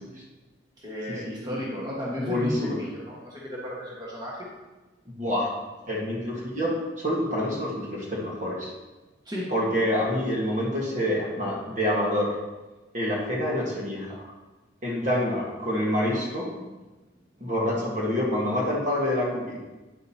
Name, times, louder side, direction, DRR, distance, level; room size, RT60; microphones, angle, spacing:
voice 1, 0.8-4.5 9.2-9.5, equal, 20° right, -5 dB, 1.5 m, -34 dB
voice 2, 2.1-2.8 5.1-5.5 5.9-8.7 9.5-12.4 12.9-14.3 14.8-16.5 17.4-19.6, left 1 dB, 40° right, -4 dB, 1.6 m, -27 dB
9.2 x 7.7 x 2.9 m, 1.1 s
head